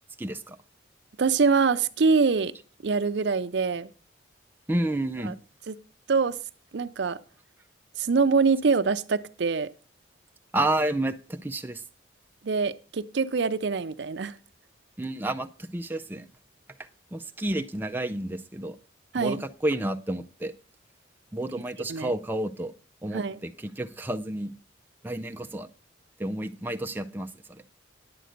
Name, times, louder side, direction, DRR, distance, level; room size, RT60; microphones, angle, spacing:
voice 1, 0.2-0.6 4.7-5.3 10.5-11.8 15.0-16.3 16.8-18.8 19.2-20.5 21.3-22.7 23.0-24.5 25.0-25.7 26.2-27.6, right 1 dB, 10° right, 0.4 m, -30 dB
voice 2, 1.2-2.5 2.8-3.9 5.3-5.4 5.7-5.8 6.1-6.4 6.7-7.2 8.0-9.7 12.4-14.4 19.1-19.4 21.9-22.1 23.1-23.4, right 4 dB, 65° right, 0.5 m, -24 dB
10.0 x 7.8 x 5.1 m
head